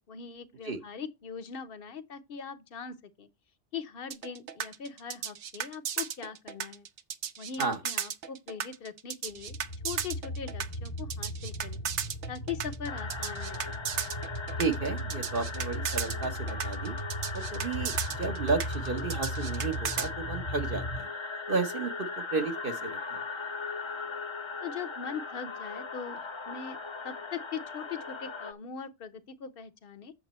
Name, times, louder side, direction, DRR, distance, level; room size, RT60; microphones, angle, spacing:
voice 1, 0.0-3.3 3.7-6.9 7.4-9.6 9.8-11.8 12.3-13.8 24.6-26.8 27.0-30.1, left 7 dB, 60° left, 1.1 m, -41 dB
sound 1, 4.1-20.1, right 8 dB, 85° right, 1.1 m, -35 dB
sound 2, 9.4-21.0, equal, 80° left, 1.7 m, -37 dB
sound 3, 12.9-28.5, left 4 dB, 30° left, 0.7 m, -39 dB
voice 2, 14.6-17.0 17.3-21.1 21.5-23.2, right 4 dB, 55° right, 1.1 m, -33 dB
8.1 x 7.1 x 4.2 m
omnidirectional pair, 1.1 m